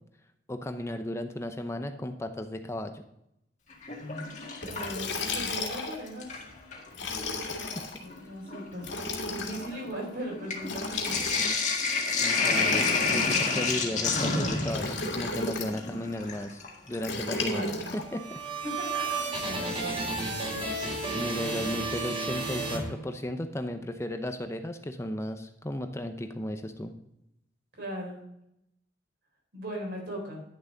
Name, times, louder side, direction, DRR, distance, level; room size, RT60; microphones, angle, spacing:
voice 1, 0.5-3.0 7.5-7.7 12.2-16.6 16.9-18.4 21.1-26.9, left 1 dB, 15° left, 7 dB, 0.6 m, -35 dB
Sink (filling or washing), 3.7-5.7 6.1-6.9 7.7-7.8 8.1-17.2 18.9-19.0 20.9-21.3 21.6-21.7 22.0-22.1, left 4 dB, 40° left, 1.8 m, -30 dB
Liquid, 4.6-6.1 6.9-8.0 8.8-9.7 10.6-11.7 12.5-13.7 14.7-15.8 17.0-18.0, left 3 dB, 90° left, 2.1 m, -34 dB
voice 2, 4.6-6.3 8.0-11.3 17.5-17.9 18.6-20.7 21.1-21.7 27.8-28.2 29.5-30.4, equal, 65° right, 0 dB, 4.1 m, -39 dB
sound 1, 17.9-23.5, right 3 dB, 35° right, 3.5 m, -33 dB
10.5 x 7.0 x 3.9 m, 0.81 s
head